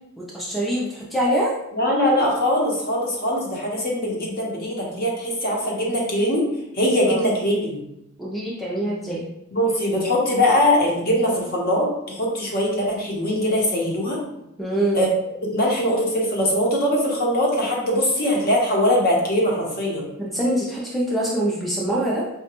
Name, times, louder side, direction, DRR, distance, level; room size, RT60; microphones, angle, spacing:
voice 1, 0.2-1.5 7.1-7.3 8.2-9.2 14.6-15.0 20.2-22.2, right 1 dB, ahead, -5 dB, 0.4 m, -24 dB
voice 2, 1.7-6.4 6.7-7.8 9.5-14.2 14.9-15.1 15.4-20.1, left 1 dB, 45° left, -2 dB, 0.8 m, -21 dB
4.8 x 2.2 x 2.9 m, 0.85 s
head